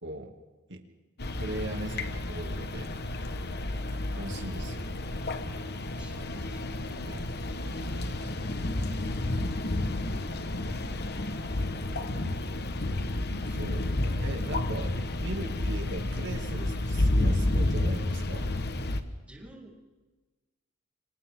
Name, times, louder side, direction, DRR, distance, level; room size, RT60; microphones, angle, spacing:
voice 1, 0.0-0.3 0.7-0.8 1.4-3.0 4.1-4.9 7.1-7.2 13.4-18.5, right 1 dB, 60° right, 4 dB, 2.6 m, -39 dB
sound 1, 1.2-19.0, left 1 dB, 50° left, 1.4 m, -31 dB
voice 2, 5.9-6.6 12.3-12.5 13.5-13.6 19.3-19.7, right 1 dB, 5° right, -2 dB, 4.2 m, -52 dB
30.0 x 25.5 x 3.8 m, 1.3 s
head